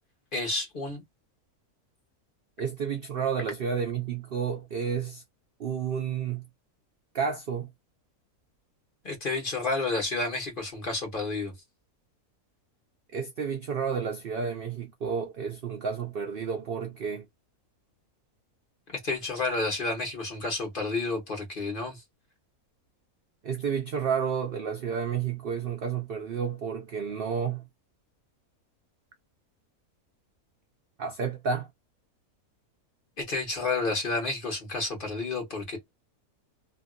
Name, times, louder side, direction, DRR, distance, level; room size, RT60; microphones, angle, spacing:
voice 1, 0.3-1.0 9.0-11.5 19.0-22.0 33.2-35.8, left 3 dB, 35° left, 1.3 m, -30 dB
voice 2, 2.6-5.2 5.6-6.5 7.1-7.7 13.1-17.3 23.4-27.6 31.0-31.7, right 6 dB, 65° right, 0.5 m, -31 dB
2.9 x 2.7 x 2.3 m
omnidirectional pair, 1.6 m